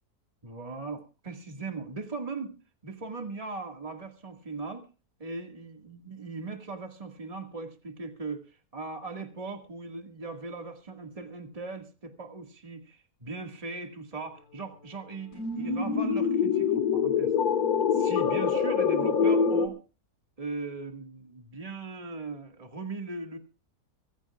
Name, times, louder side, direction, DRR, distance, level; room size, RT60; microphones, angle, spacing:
voice 1, 0.4-2.5 2.8-4.9 5.2-17.3 17.9-19.8 20.4-23.4, right 3 dB, 25° right, 4 dB, 1.9 m, -39 dB
sound 1, 15.3-19.7, left 6 dB, 70° left, 2.2 m, -25 dB
24.0 x 15.5 x 2.4 m, 0.32 s
omnidirectional pair, 1.7 m